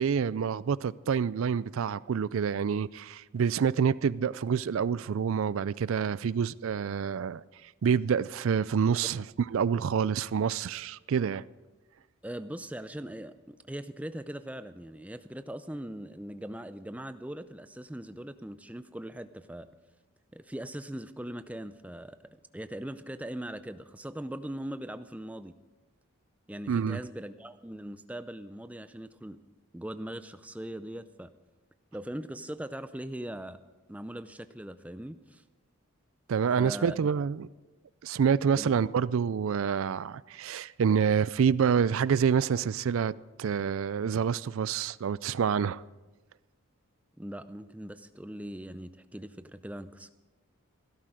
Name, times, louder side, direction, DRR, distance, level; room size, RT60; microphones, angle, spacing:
voice 1, 0.0-7.4 7.8-9.2 9.5-11.4 26.7-27.0 36.3-37.5 38.0-43.1 43.4-45.8, right 7 dB, 65° right, 0.4 m, -27 dB
voice 2, 12.2-19.7 20.3-25.5 26.5-29.4 29.7-31.3 31.9-33.6 33.9-35.4 36.6-37.0 38.6-38.8 47.2-50.1, right 1 dB, 5° right, 0.5 m, -40 dB
16.0 x 13.0 x 5.0 m
head